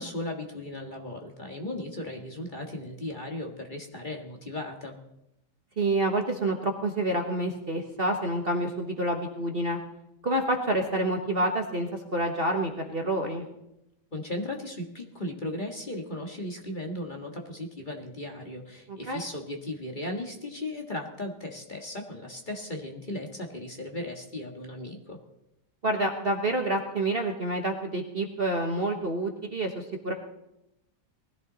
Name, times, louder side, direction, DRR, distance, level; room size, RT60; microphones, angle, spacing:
voice 1, 0.0-5.0 14.1-25.2, left 1 dB, 30° left, 1 dB, 1.8 m, -36 dB
voice 2, 5.8-9.8 10.2-13.4 19.1-19.2 25.8-30.1, right 1 dB, 35° right, 3 dB, 1.3 m, -28 dB
20.0 x 14.5 x 4.0 m, 0.86 s
omnidirectional pair, 1.8 m